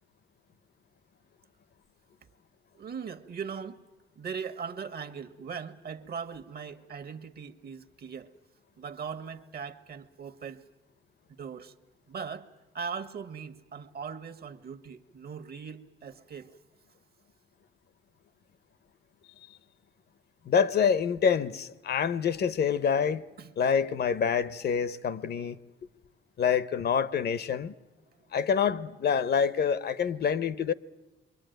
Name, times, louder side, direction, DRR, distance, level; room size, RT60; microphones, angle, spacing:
voice 1, 2.7-3.8 4.2-8.3 8.7-10.6 11.4-11.7 12.1-12.5 12.7-16.5 23.4-23.5, right 6 dB, 50° right, 1.4 m, -39 dB
voice 2, 20.5-23.2 23.6-25.6 26.4-27.7 28.3-30.7, left 7 dB, 55° left, 0.9 m, -26 dB
27.5 x 23.5 x 9.2 m
cardioid pair, 90°, 20 cm